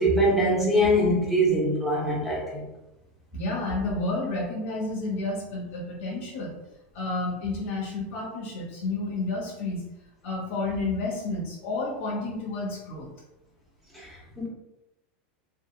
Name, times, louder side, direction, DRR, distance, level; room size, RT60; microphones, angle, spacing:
voice 1, 0.0-2.6 13.9-14.5, equal, ahead, -6 dB, 0.7 m, -23 dB
voice 2, 3.3-6.5 6.9-9.8 10.2-13.1, left 2 dB, 75° left, -4 dB, 0.7 m, -30 dB
2.8 x 2.5 x 2.2 m, 0.96 s
supercardioid pair, 155°, 7 cm